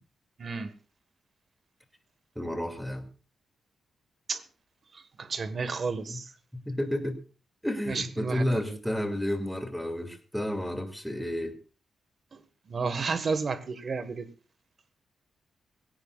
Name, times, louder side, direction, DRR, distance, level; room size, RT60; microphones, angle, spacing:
voice 1, 0.4-0.7 4.3-4.4 4.9-6.3 7.9-8.8 12.3-12.4 12.7-14.3, right 4 dB, 40° right, 1.5 m, -32 dB
voice 2, 2.4-3.1 6.1-6.2 6.5-7.2 7.6-11.5, left 1 dB, ahead, 2.5 m, -31 dB
20.5 x 17.0 x 2.4 m
wide cardioid pair, 135°, 0 cm